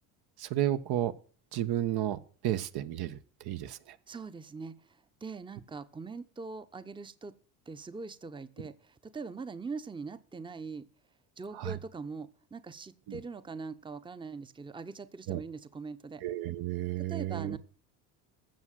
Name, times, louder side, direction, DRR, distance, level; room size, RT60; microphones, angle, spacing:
voice 1, 0.4-1.1 1.5-4.0 11.5-11.8 13.1-13.2 15.3-15.4 16.2-17.6, right 12 dB, 60° right, 11 dB, 1.2 m, -32 dB
voice 2, 4.1-7.3 7.7-10.9 11.4-16.2 17.1-17.6, right 4 dB, 10° right, 13 dB, 0.8 m, -42 dB
15.0 x 6.4 x 7.5 m, 0.43 s
supercardioid pair, 85°, 42 cm